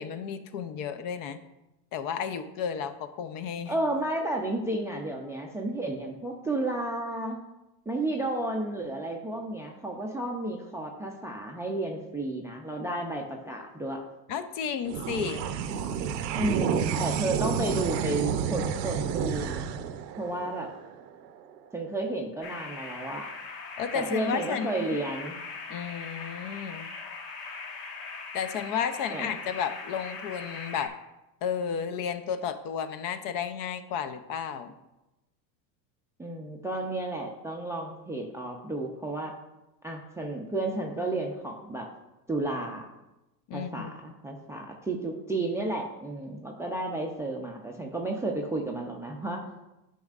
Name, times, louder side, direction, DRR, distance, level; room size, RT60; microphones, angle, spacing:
voice 1, 0.0-1.4 1.9-3.7 14.3-15.5 23.8-25.0 25.7-26.9 28.3-30.9 31.4-34.7 43.5-43.9, left 7 dB, 45° left, 11 dB, 0.6 m, -32 dB
voice 2, 3.7-7.4 7.9-14.0 16.3-19.7 20.2-20.7 21.7-23.3 23.9-25.3 29.1-29.3 36.2-39.3 39.8-41.9 42.3-42.9 43.5-49.4, right 2 dB, 5° right, 1 dB, 0.4 m, -32 dB
sound 1, 14.9-21.6, right 8 dB, 85° right, 0.7 m, -30 dB
sound 2, 22.4-30.9, left 4 dB, 70° left, 1.6 m, -40 dB
10.5 x 5.4 x 2.4 m, 0.97 s
supercardioid pair, 115°, 49 cm